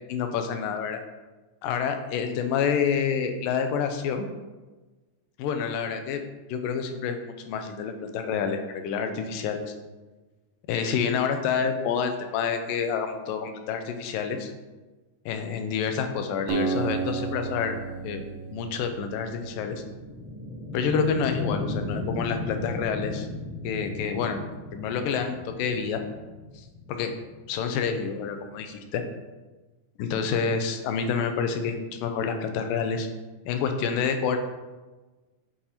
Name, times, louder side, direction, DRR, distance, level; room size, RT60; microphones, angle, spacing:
voice 1, 0.1-1.0 1.6-4.3 5.4-6.2 6.5-9.6 10.7-14.5 15.3-17.8 18.0-18.2 18.5-19.8 20.7-23.3 23.6-24.4 24.7-26.0 26.9-27.1 27.5-29.0 30.0-33.1 33.5-34.4, left 6 dB, 85° left, 6 dB, 2.4 m, -28 dB
Acoustic guitar, 16.5-20.1, right 5 dB, 70° right, 1.7 m, -32 dB
sound 1, 18.0-28.7, left 2 dB, 45° left, 1.6 m, -36 dB
7.8 x 4.1 x 4.3 m, 1.2 s
omnidirectional pair, 3.9 m